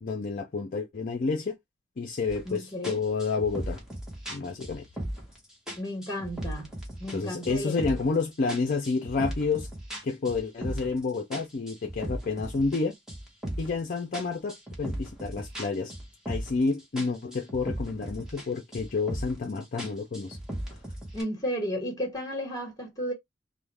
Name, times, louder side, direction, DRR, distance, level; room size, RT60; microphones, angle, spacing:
voice 1, 0.0-1.6 2.0-3.8 4.3-4.8 7.1-9.7 10.0-12.9 13.6-15.9 16.3-20.4, left 4 dB, 45° left, 0.5 m, -29 dB
sound 1, 2.3-2.5 2.8-5.4 5.7-7.2 7.4-8.2 8.5-11.0 11.3-13.8 14.1-16.7 17.0-18.5 18.7-19.4 19.8-21.2, right 1 dB, 5° right, 0.8 m, -37 dB
voice 2, 2.4-3.0 5.8-6.7 7.0-7.9 21.1-23.1, equal, 20° left, 1.3 m, -33 dB
2.4 x 2.1 x 3.2 m
head